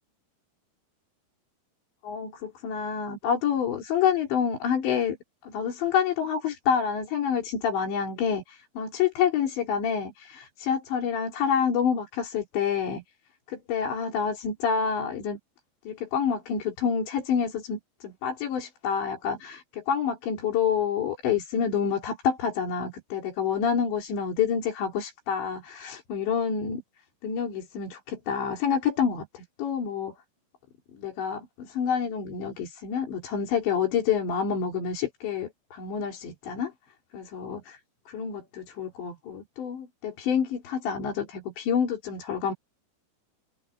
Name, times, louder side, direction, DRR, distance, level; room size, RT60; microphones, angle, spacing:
voice 1, 2.0-5.2 5.4-13.0 13.5-15.4 15.9-26.8 27.2-30.2 30.9-36.7 37.1-37.8 38.1-42.5, left 7 dB, 80° left, 6.0 m, -28 dB
omnidirectional pair, 5.0 m